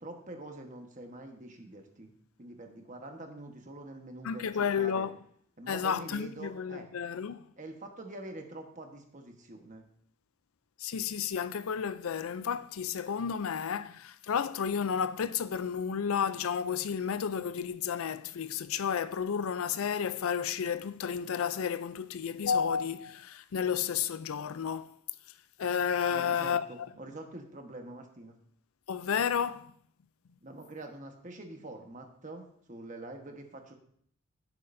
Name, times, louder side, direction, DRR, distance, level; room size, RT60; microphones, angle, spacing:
voice 1, 0.0-2.1 2.4-5.1 5.6-6.9 7.6-9.8 26.1-28.4 30.4-33.7, right 2 dB, 35° right, 1.3 m, -45 dB
voice 2, 4.2-5.2 5.7-7.5 10.8-24.9 25.6-26.9 28.9-29.7, left 7 dB, 80° left, 0.4 m, -32 dB
16.5 x 7.6 x 2.7 m
head